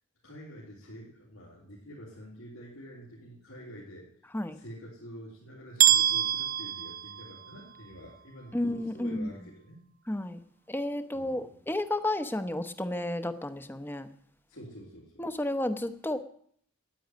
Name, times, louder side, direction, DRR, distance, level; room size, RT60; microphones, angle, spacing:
voice 1, 0.2-4.1 4.5-9.8 11.1-11.6 14.5-15.2, equal, 90° left, -6 dB, 3.6 m, -47 dB
sound 1, 5.8-7.8, right 11 dB, 40° right, 0.5 m, -25 dB
voice 2, 8.5-9.3 10.1-10.4 10.7-14.1 15.2-16.2, left 1 dB, 10° left, 11 dB, 0.8 m, -32 dB
10.5 x 9.4 x 9.3 m, 0.63 s
head